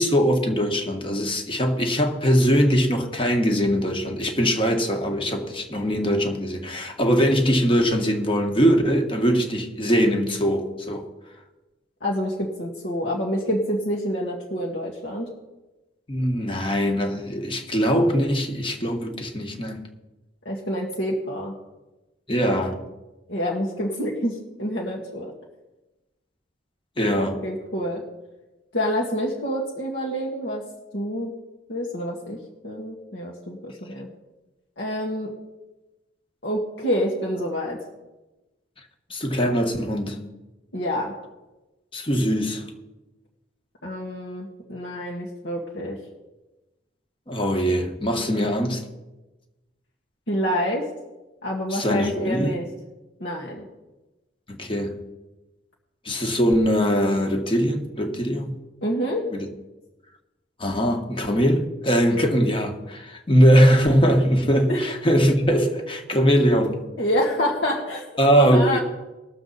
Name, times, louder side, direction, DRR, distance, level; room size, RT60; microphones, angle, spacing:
voice 1, 0.0-11.1 16.1-19.8 22.3-22.8 27.0-27.4 39.1-40.2 41.9-42.6 47.3-48.8 51.7-52.5 54.5-54.9 56.0-58.5 59.3-59.5 60.6-66.8 68.2-68.8, equal, 30° left, 4 dB, 1.4 m, -21 dB
voice 2, 12.0-15.3 20.5-21.5 23.3-25.3 27.2-28.0 28.7-30.6 30.9-31.3 31.7-32.4 32.6-34.1 34.8-35.3 36.4-37.8 40.7-41.1 43.8-46.0 50.3-50.8 51.4-52.7 53.2-53.7 58.8-59.3 64.7-64.8 67.0-68.0 68.3-68.8, equal, 65° left, -3 dB, 1.6 m, -27 dB
20.0 x 7.0 x 4.0 m, 1.1 s
head